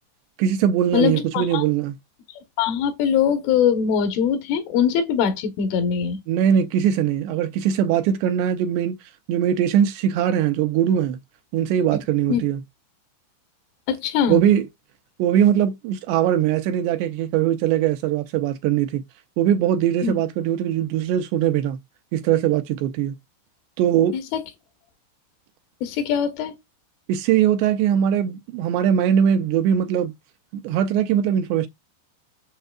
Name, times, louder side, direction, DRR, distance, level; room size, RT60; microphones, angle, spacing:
voice 1, 0.4-2.0 6.3-9.0 9.3-11.2 11.5-12.6 14.3-14.7 15.2-19.0 19.4-21.8 22.1-23.1 23.8-24.2 27.1-30.1 30.5-31.7, right 9 dB, 80° right, 2.5 m, -21 dB
voice 2, 0.9-1.6 2.6-6.2 11.9-12.0 12.3-12.4 13.9-14.4 20.0-20.2 24.1-24.4 25.8-26.6, left 8 dB, 80° left, 3.6 m, -22 dB
9.0 x 6.6 x 2.4 m
omnidirectional pair, 5.5 m